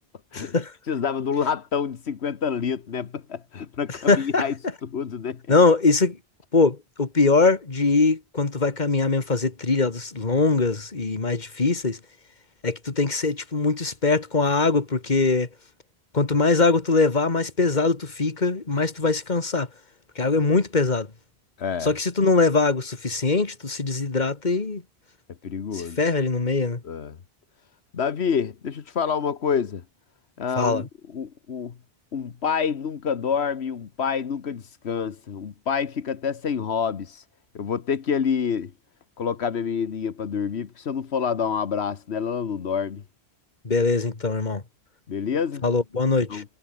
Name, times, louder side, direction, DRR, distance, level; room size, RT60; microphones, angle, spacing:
voice 1, 0.3-0.7 3.9-4.5 5.5-6.2 6.5-12.0 12.6-15.5 16.1-19.7 20.2-21.1 21.8-24.8 25.7-26.8 30.6-30.9 43.6-44.6 45.6-46.4, left 3 dB, 45° left, 2.2 m, -22 dB
voice 2, 0.9-4.5 4.8-5.4 21.6-21.9 25.4-26.0 26.8-27.2 27.9-29.8 30.4-30.9 31.1-31.7 32.1-37.2 37.5-38.7 39.2-43.0 45.1-45.6 46.3-46.4, left 6 dB, 85° left, 1.5 m, -27 dB
omnidirectional pair, 1.1 m